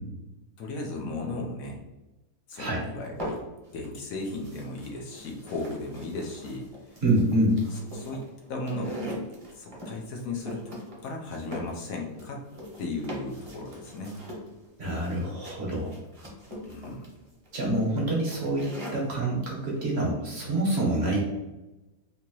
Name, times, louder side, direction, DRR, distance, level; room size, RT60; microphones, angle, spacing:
voice 1, 0.6-1.8 2.5-3.4 3.7-7.0 7.9-9.2 9.5-10.8 11.0-12.4 12.8-14.2 16.6-17.1, left 2 dB, 70° left, 0 dB, 1.0 m, -36 dB
sound 1, 3.0-3.9 4.2-19.2, equal, 25° right, 0.9 m, -41 dB
voice 2, 7.0-7.6 14.8-15.9 17.5-18.7 18.9-21.2, right 1 dB, 45° right, -3 dB, 1.1 m, -26 dB
3.8 x 2.8 x 3.0 m, 1.0 s
omnidirectional pair, 1.6 m